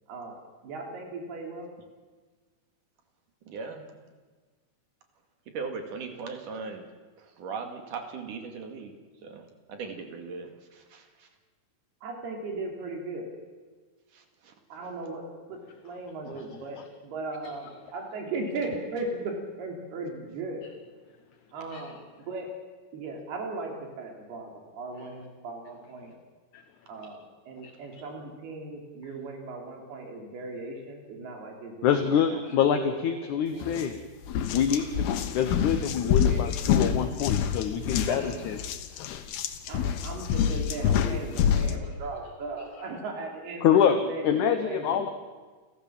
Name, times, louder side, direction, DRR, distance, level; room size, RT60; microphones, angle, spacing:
voice 1, 0.6-1.7 12.0-13.3 14.7-15.2 15.5-20.7 21.5-22.0 22.3-22.5 22.9-26.1 26.9-27.2 27.5-33.2 33.5-33.9 36.1-36.9 38.1-38.4 39.7-45.1, right 3 dB, 85° right, 1 dB, 5.1 m, -37 dB
voice 2, 3.5-3.9 5.5-6.8 7.2-11.3 14.1-14.5 39.8-40.0, right 5 dB, 60° right, 5 dB, 3.6 m, -39 dB
voice 3, 31.8-34.0 34.5-35.1 35.3-38.6 43.6-44.0 44.2-45.1, left 8 dB, 65° left, 8 dB, 2.1 m, -25 dB
sound 1, 33.6-33.8 34.2-41.8, left 8 dB, 80° left, 3.2 m, -27 dB
30.0 x 14.0 x 7.5 m, 1.4 s
omnidirectional pair, 4.4 m